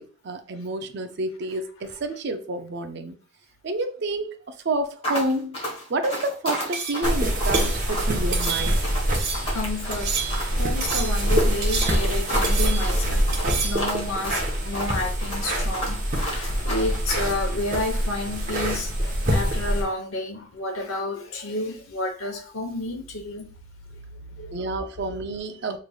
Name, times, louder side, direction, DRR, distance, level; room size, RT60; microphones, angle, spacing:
voice 1, 0.0-3.2 3.6-5.6 5.9-8.8 24.5-25.8, right 2 dB, 55° right, 0.5 m, -29 dB
sound 1, 5.0-17.0, equal, 30° left, 1.3 m, -32 dB
sound 2, 6.7-7.1 7.5-7.8 8.3-8.8 9.1-9.5 9.9-10.5 10.8-11.2 11.6-12.2 12.4-13.0 13.3-13.9, right 6 dB, 85° right, 1.5 m, -30 dB
sound 3, 7.0-19.8, equal, 40° right, 1.0 m, -25 dB
voice 2, 9.1-10.2 10.5-13.3 13.6-23.5 23.9-24.7, left 2 dB, 85° left, 0.9 m, -31 dB
5.2 x 3.2 x 2.3 m
head